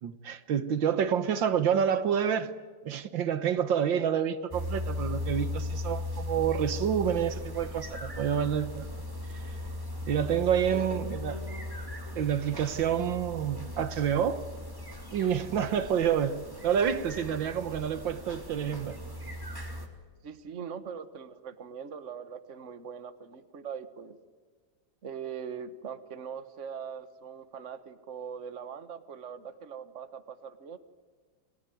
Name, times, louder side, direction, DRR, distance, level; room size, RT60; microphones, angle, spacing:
voice 1, 0.0-2.5 2.9-8.9 9.3-9.5 10.1-11.3 12.2-14.4 15.1-19.0, right 8 dB, 75° right, 1.8 m, -28 dB
sound 1, 4.5-19.9, left 2 dB, 10° right, 3.3 m, -38 dB
voice 2, 20.2-24.2 25.0-30.8, right 7 dB, 40° right, 1.6 m, -41 dB
29.5 x 21.5 x 9.3 m
omnidirectional pair, 2.1 m